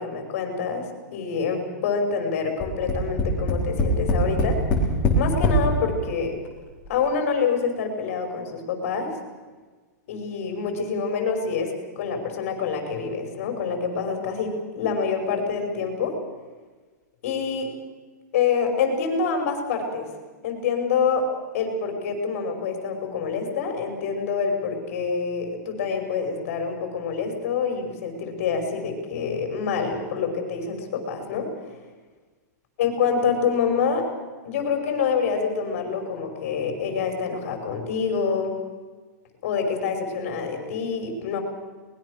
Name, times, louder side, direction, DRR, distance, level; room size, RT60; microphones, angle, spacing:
voice 1, 0.0-6.4 6.9-9.1 10.1-16.2 17.2-17.7 18.3-20.1 20.4-21.3 21.5-31.8 32.8-34.1 34.4-38.6 39.4-41.4, left 5 dB, 45° left, 4 dB, 5.4 m, -26 dB
Tap, 2.6-5.6 6.4-6.5 6.8-6.9, left 1 dB, 20° left, 4.1 m, -21 dB
23.0 x 20.5 x 6.6 m, 1.4 s
supercardioid pair, 170°, 10 cm